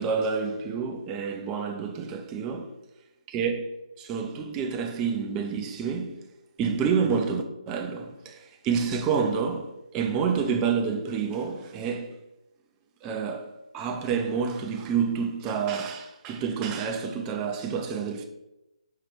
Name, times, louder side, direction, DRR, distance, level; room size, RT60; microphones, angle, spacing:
voice 1, 0.0-2.7 3.3-3.7 4.0-6.2 6.6-12.2 13.0-18.2, right 6 dB, 15° right, 0.4 m, -28 dB
5.4 x 2.8 x 3.3 m
figure-of-eight pair, 145°, 4 cm